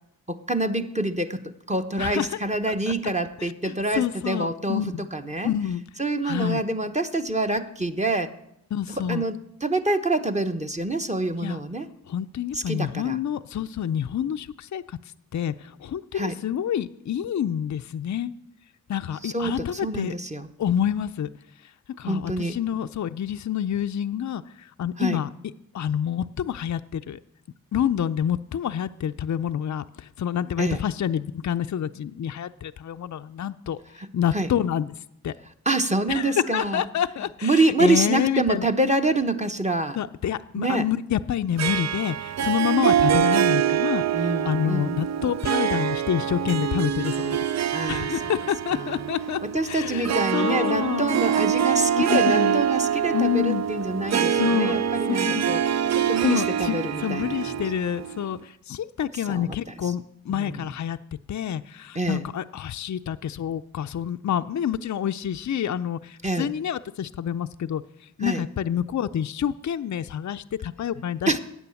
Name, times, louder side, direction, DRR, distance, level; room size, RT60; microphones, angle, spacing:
voice 1, 0.3-5.5 6.0-8.3 8.9-11.9 12.5-13.2 16.1-16.4 19.2-20.5 22.0-22.6 25.0-25.2 30.6-30.8 34.3-34.5 35.7-36.9 37.4-40.0 40.5-40.9 44.1-45.0 47.7-48.1 48.7-49.0 49.4-55.6 55.9-57.6 59.3-59.6 59.8-59.9 60.3-60.6 61.9-62.3 66.2-66.5 68.2-68.4 71.3-71.4, right 2 dB, 20° right, 10 dB, 1.0 m, -26 dB
voice 2, 2.0-2.4 3.4-5.1 5.4-5.8 6.2-6.6 8.7-9.2 11.4-11.6 12.1-15.0 15.3-18.3 18.9-20.2 20.6-21.3 21.6-21.7 22.0-25.3 25.7-27.2 27.7-34.9 35.2-35.3 36.1-38.7 40.0-47.4 47.9-49.4 49.7-51.2 52.0-52.6 53.1-53.7 54.3-54.8 55.3-55.4 56.2-61.0 61.3-71.4, left 9 dB, 50° left, 9 dB, 0.5 m, -28 dB
Harp, 41.6-58.3, right 9 dB, 50° right, 0.4 m, -25 dB
9.4 x 8.4 x 7.1 m, 0.81 s
cardioid pair, 40°, 36 cm